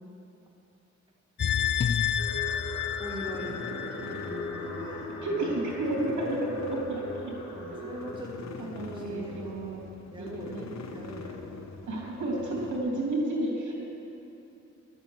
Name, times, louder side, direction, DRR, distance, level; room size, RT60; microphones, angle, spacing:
sound 1, 1.4-4.6 5.0-5.1, left 9 dB, 40° left, 0.4 m, -29 dB
sound 2, 2.2-8.2, left 2 dB, 85° left, 2.3 m, -40 dB
sound 3, 2.9-12.8, left 4 dB, 65° left, 0.9 m, -44 dB
voice 1, 3.0-3.6 3.9-6.0 7.4-9.7 10.1-11.6, left 1 dB, 15° right, -4 dB, 2.3 m, -42 dB
voice 2, 5.2-7.3 7.7-7.8 8.7-9.8 10.2-10.7 11.9-13.7, right 1 dB, 85° right, -3 dB, 3.1 m, -31 dB
12.0 x 8.1 x 8.0 m, 2.9 s
wide cardioid pair, 110°, 29 cm